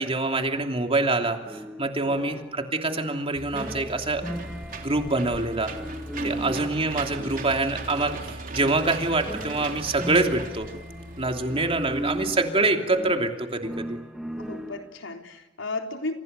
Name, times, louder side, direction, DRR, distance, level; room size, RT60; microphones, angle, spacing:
voice 1, 0.0-4.2 4.8-5.7 6.2-10.7 11.2-14.0, right 2 dB, 30° right, 4 dB, 2.9 m, -25 dB
sound 1, 1.5-15.0, right 1 dB, ahead, 1.8 m, -38 dB
voice 2, 2.0-2.3 6.2-6.8 11.6-11.7 12.0-12.2 14.4-16.1, left 2 dB, 80° left, 4 dB, 3.8 m, -35 dB
Engine / Mechanisms, 3.4-12.3, right 2 dB, 45° right, 3.5 m, -38 dB
29.5 x 29.0 x 6.8 m, 1.1 s
head